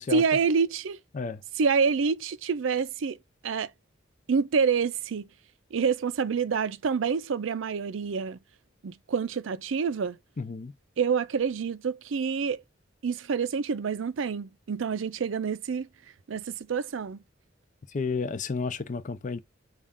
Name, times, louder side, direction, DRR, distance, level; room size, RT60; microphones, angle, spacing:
voice 1, 0.1-1.0 1.6-3.2 3.4-3.7 4.3-5.3 5.7-8.4 8.8-10.2 11.0-12.6 13.0-15.9 16.3-17.2, right 5 dB, 85° right, 0.5 m, -27 dB
voice 2, 10.4-10.7 17.9-19.4, left 4 dB, 40° left, 0.5 m, -31 dB
5.3 x 2.4 x 3.5 m
head